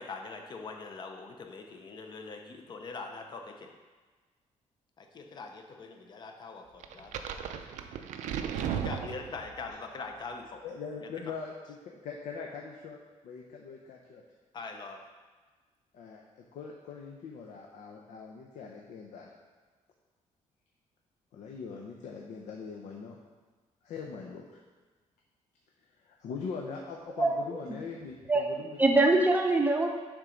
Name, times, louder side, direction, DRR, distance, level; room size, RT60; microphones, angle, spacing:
voice 1, 0.0-3.7 5.0-7.2 8.5-10.6 11.0-11.1 14.5-15.0, left 4 dB, 35° left, 4 dB, 0.7 m, -42 dB
sound 1, 6.8-9.7, right 8 dB, 80° right, 0.5 m, -35 dB
voice 2, 10.6-11.5 11.8-13.0 13.2-14.2 15.9-19.3 21.3-23.2 23.8-24.6 26.2-28.8, left 5 dB, 70° left, 0 dB, 0.7 m, -42 dB
voice 3, 27.2-27.6 28.3-28.5 28.8-29.9, right 2 dB, 15° right, 2 dB, 0.6 m, -24 dB
7.1 x 3.7 x 5.1 m, 1.4 s
cardioid pair, 160°, 13 cm